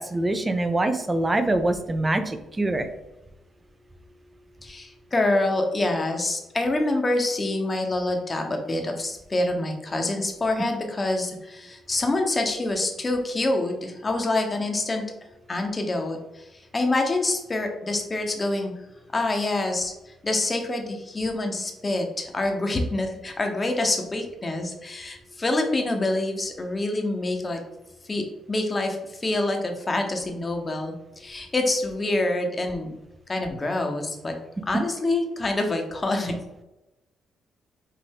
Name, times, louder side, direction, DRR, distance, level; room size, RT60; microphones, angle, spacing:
voice 1, 0.0-2.9, right 2 dB, 20° right, 9 dB, 0.5 m, -24 dB
voice 2, 4.6-15.0 15.5-18.7 19.1-27.6 28.1-32.9 33.3-34.3 34.7-36.4, left 2 dB, 25° left, 4 dB, 0.9 m, -26 dB
5.4 x 2.6 x 3.5 m, 0.97 s
cardioid pair, 90°, 0 cm